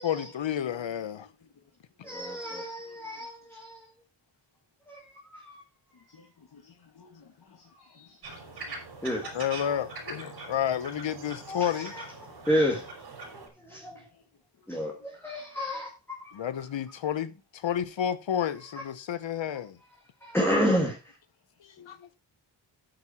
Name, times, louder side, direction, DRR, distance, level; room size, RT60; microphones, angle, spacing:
voice 1, 0.0-1.3 9.3-11.9 16.3-19.8 21.6-22.1, left 9 dB, 80° left, 1.2 m, -31 dB
voice 2, 0.6-1.5 2.2-3.1 5.9-8.8 13.9-14.2 14.6-14.7 21.6-21.8, left 4 dB, 55° left, 2.1 m, -57 dB
voice 3, 2.0-3.9 4.9-5.6 9.0-9.3 9.6-9.8 11.5-12.9 13.3-14.1 14.7-16.4 20.2-21.2, equal, 5° left, 2.1 m, -31 dB
sound 1, 8.2-13.5, right 3 dB, 60° right, 4.5 m, -42 dB
9.4 x 8.6 x 4.4 m
wide cardioid pair, 170°, 44 cm